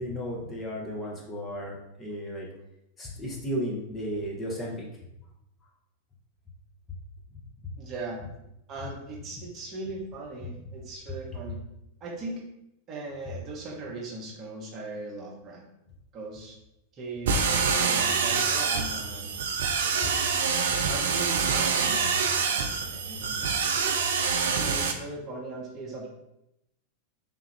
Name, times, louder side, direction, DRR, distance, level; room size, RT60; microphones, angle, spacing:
voice 1, 0.0-2.5 3.0-4.9 7.6-7.7, equal, 15° left, -3 dB, 0.7 m, -34 dB
voice 2, 7.8-8.2 8.7-11.6 12.0-12.5 12.9-15.6 16.1-16.6 16.9-19.3 20.9-22.1 22.4-23.6 24.4-26.1, right 2 dB, 35° right, -2 dB, 0.8 m, -39 dB
sound 1, 17.3-24.9, right 5 dB, 60° right, 0.3 m, -26 dB
3.5 x 2.3 x 3.2 m, 0.84 s
figure-of-eight pair, 90°, 0 cm